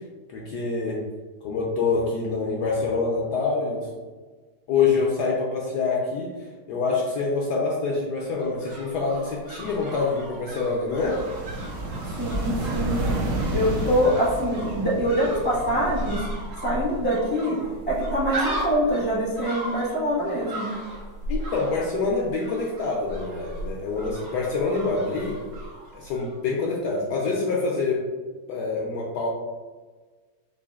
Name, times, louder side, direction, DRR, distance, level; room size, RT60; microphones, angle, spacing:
voice 1, 0.3-1.0 1.4-3.9 4.7-6.3 6.7-11.2 21.3-25.4 25.9-28.0 28.5-29.3, left 4 dB, 75° left, -3 dB, 1.0 m, -26 dB
sound 1, 8.2-26.4 26.6-26.7, right 1 dB, 90° right, 1.8 m, -36 dB
sound 2, 11.0-16.2, right 1 dB, 65° right, 1.2 m, -30 dB
voice 2, 12.1-16.2 16.6-17.6 17.9-20.7, equal, 30° right, -8 dB, 0.5 m, -24 dB
4.7 x 2.5 x 2.3 m, 1.4 s
omnidirectional pair, 2.2 m